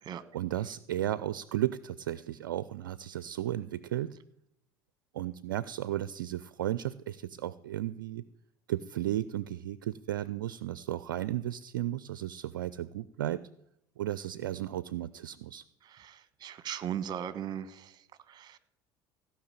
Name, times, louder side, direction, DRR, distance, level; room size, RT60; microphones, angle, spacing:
voice 1, 0.3-4.2 5.1-8.2 8.7-13.5 14.0-15.6, right 13 dB, 80° right, 17 dB, 0.4 m, -34 dB
voice 2, 15.8-18.6, right 9 dB, 40° right, 15 dB, 1.2 m, -39 dB
16.0 x 5.9 x 8.7 m, 0.79 s
hypercardioid pair, 75°, 11 cm